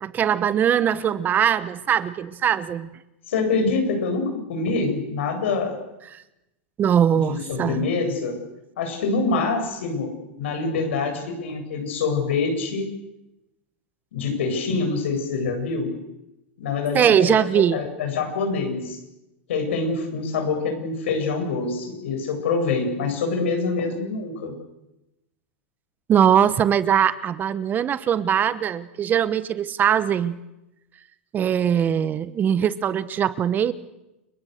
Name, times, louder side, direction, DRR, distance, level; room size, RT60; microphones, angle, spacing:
voice 1, 0.0-2.9 6.1-6.2 6.8-7.9 16.9-17.8 26.1-30.4 31.3-33.7, right 9 dB, 30° right, 15 dB, 1.1 m, -21 dB
voice 2, 3.3-5.8 7.1-8.4 8.8-12.9 14.1-15.9 16.6-19.0 19.5-24.5, left 4 dB, 80° left, 4 dB, 7.9 m, -25 dB
30.0 x 22.5 x 6.7 m, 0.91 s
hypercardioid pair, 120°, 6 cm